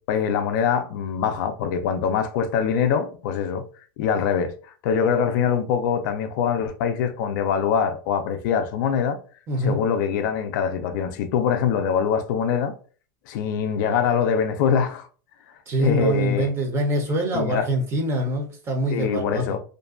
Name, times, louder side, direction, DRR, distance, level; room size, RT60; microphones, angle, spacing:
voice 1, 0.1-3.6 4.0-4.5 4.8-9.2 9.6-12.7 13.3-15.1 15.8-16.5 17.3-17.7 18.9-19.6, left 7 dB, 60° left, 0.4 m, -23 dB
voice 2, 9.5-9.8 15.7-19.6, right 1 dB, 20° right, 0.6 m, -24 dB
2.5 x 2.2 x 2.4 m
supercardioid pair, 145°, 11 cm